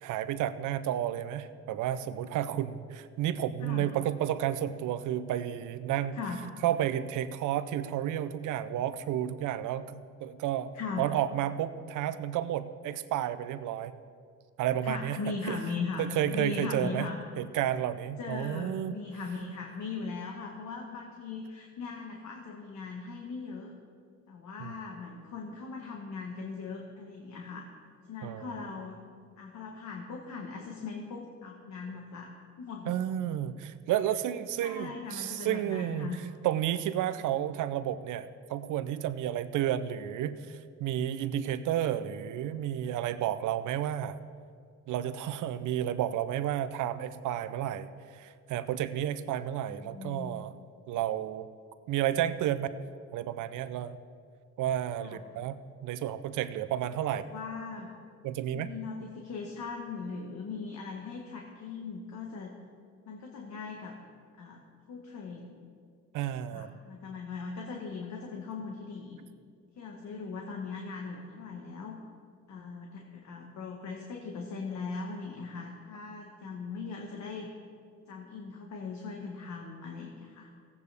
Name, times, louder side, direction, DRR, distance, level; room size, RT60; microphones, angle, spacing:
voice 1, 0.0-6.2 6.6-10.7 11.0-13.9 14.6-15.6 16.0-17.1 17.4-19.0 24.6-24.7 28.2-28.6 32.9-44.2 44.9-50.5 50.9-51.5 51.9-52.7 53.1-54.0 54.6-55.6 55.8-57.2 58.2-58.7 66.1-66.7, right 11 dB, 80° right, 13 dB, 0.6 m, -31 dB
voice 2, 10.7-11.1 14.8-17.2 18.2-23.7 24.3-27.7 28.1-29.0 29.4-32.3 32.6-32.9 34.6-36.2 49.7-50.3 55.0-55.2 57.1-57.9 58.5-62.5 63.1-63.9 64.3-64.6 64.9-65.6 66.5-69.2 69.8-72.0 72.5-77.5 78.1-80.5, left 4 dB, 65° left, 1 dB, 1.3 m, -39 dB
16.5 x 8.3 x 3.4 m, 2.2 s
cardioid pair, 90°, 30 cm